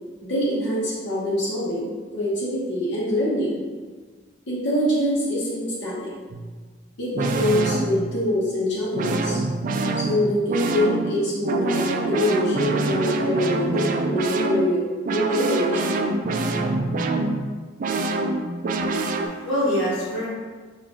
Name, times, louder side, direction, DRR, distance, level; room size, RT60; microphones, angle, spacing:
voice 1, 0.2-3.6 4.5-6.1 7.0-9.4 10.0-14.8 15.1-16.0, left 1 dB, 70° left, -8 dB, 0.9 m, -24 dB
sound 1, 6.3-6.5 7.1-8.3 8.9-19.3, right 3 dB, 45° right, 0.3 m, -25 dB
voice 2, 18.8-20.3, equal, 85° left, -11 dB, 1.2 m, -26 dB
5.0 x 2.5 x 3.6 m, 1.5 s
head